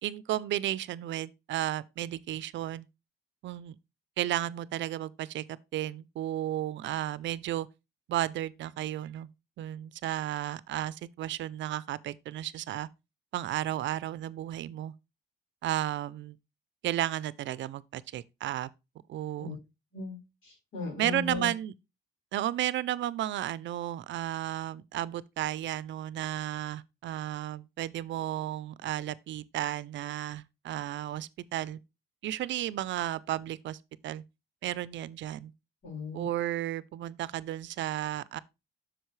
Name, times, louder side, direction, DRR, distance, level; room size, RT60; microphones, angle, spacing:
voice 1, 0.0-2.9 3.4-3.8 4.2-7.7 8.1-9.3 9.6-12.9 13.3-14.9 15.6-16.4 16.8-18.7 19.1-19.6 21.0-21.7 22.3-31.8 32.2-33.8 34.0-34.2 34.6-35.5 36.1-38.4, right 13 dB, 70° right, 0.5 m, -33 dB
voice 2, 19.9-21.5 35.8-36.2, left 3 dB, 80° left, 4.6 m, -37 dB
8.0 x 6.2 x 3.1 m
cardioid pair, 90°, 20 cm